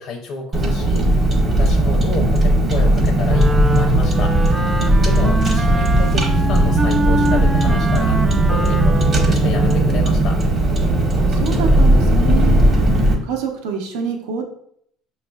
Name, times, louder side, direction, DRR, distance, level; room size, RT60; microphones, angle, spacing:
voice 1, 0.0-4.7 5.0-8.2 8.5-10.5, left 4 dB, 65° left, 2 dB, 0.6 m, -30 dB
Car, 0.5-13.1, right 1 dB, 35° right, 0.8 m, -16 dB
Wind instrument woodwind instrument, 3.3-9.9, right 1 dB, 15° right, 0.4 m, -24 dB
voice 2, 11.2-12.6 13.2-14.4, right 6 dB, 85° right, 3 dB, 0.8 m, -26 dB
5.3 x 2.4 x 2.3 m, 0.67 s
supercardioid pair, 100°, 0 cm